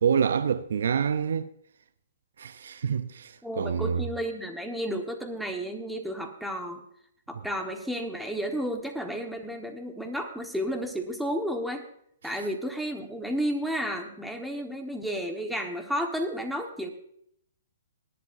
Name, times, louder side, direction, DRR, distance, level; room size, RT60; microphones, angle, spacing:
voice 1, 0.0-1.5 2.4-4.0, right 7 dB, 75° right, 0.6 m, -27 dB
voice 2, 3.4-6.8 7.3-11.8 12.2-16.9, equal, ahead, 1.3 m, -32 dB
19.5 x 11.0 x 2.6 m
hypercardioid pair, 145°, 0 cm